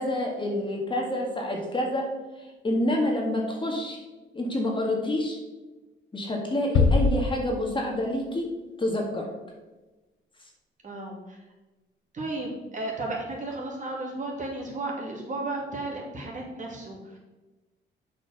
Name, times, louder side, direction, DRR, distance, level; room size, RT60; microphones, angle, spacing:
voice 1, 0.0-2.1 2.6-4.0 4.3-5.4 6.1-8.5 8.8-9.3, left 1 dB, 25° left, 1 dB, 1.8 m, -27 dB
sound 1, 6.7-8.3, left 4 dB, 80° left, 0.8 m, -24 dB
voice 2, 10.8-11.4 12.1-17.2, right 2 dB, 40° right, -2 dB, 2.6 m, -34 dB
7.8 x 4.9 x 5.9 m, 1.1 s
cardioid pair, 90°, 20 cm